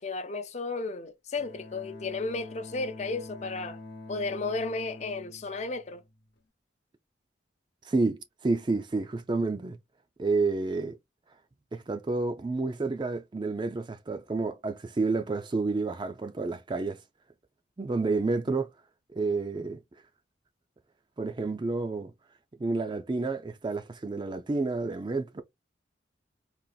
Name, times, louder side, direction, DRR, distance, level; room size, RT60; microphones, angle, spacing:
voice 1, 0.0-3.8 4.1-6.0, left 3 dB, 35° left, 0.5 m, -33 dB
Bowed string instrument, 1.4-6.4, left 2 dB, 60° left, 0.8 m, -46 dB
voice 2, 7.8-9.8 10.2-11.0 11.7-17.0 17.8-18.7 19.1-19.8 21.2-22.1 22.6-25.4, right 3 dB, 25° right, 0.4 m, -29 dB
3.9 x 2.4 x 2.3 m
head